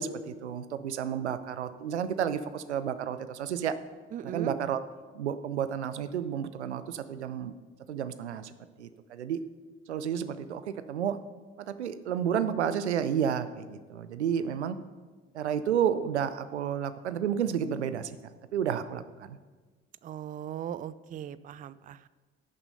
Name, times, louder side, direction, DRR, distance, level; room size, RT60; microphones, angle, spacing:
voice 1, 0.0-3.8 4.2-4.8 5.1-7.5 7.9-8.5 8.8-9.4 9.9-11.2 11.6-14.8 15.3-18.2 18.5-19.4, right 8 dB, 85° right, 13 dB, 0.5 m, -31 dB
voice 2, 4.1-4.6 20.0-22.1, right 10 dB, 25° right, 17 dB, 0.4 m, -39 dB
10.5 x 6.8 x 5.4 m, 1.3 s
figure-of-eight pair, 45°, 33 cm